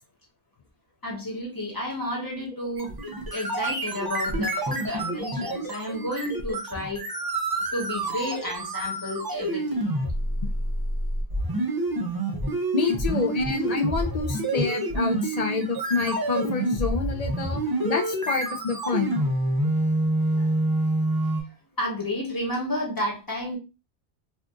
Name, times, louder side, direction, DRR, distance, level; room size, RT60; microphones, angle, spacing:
voice 1, 1.0-2.9 3.3-7.1 7.7-9.8 20.3-20.6 21.3-21.4 21.8-23.6, left 1 dB, 20° left, -2 dB, 1.1 m, -31 dB
sound 1, 2.8-21.4, right 1 dB, 25° right, 0.5 m, -27 dB
voice 2, 12.7-19.2, left 5 dB, 55° left, 5 dB, 0.4 m, -28 dB
2.7 x 2.4 x 3.4 m, 0.28 s
omnidirectional pair, 1.1 m